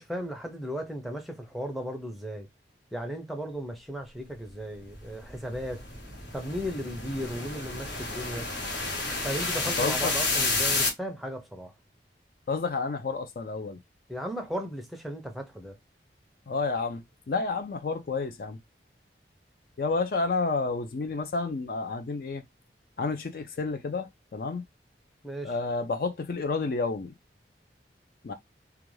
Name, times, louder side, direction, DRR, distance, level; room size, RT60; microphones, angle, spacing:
voice 1, 0.0-2.5 2.9-5.8 6.3-8.5 9.1-11.7 14.1-15.8 25.2-25.5, equal, ahead, 0.5 m, -36 dB
sound 1, 4.9-10.9, left 3 dB, 75° left, 1.1 m, -30 dB
voice 2, 9.8-10.1 12.5-13.8 16.5-18.6 19.8-22.4 23.0-24.6 25.4-27.1 28.2-28.3, left 4 dB, 55° left, 0.4 m, -30 dB
2.4 x 2.2 x 3.1 m
head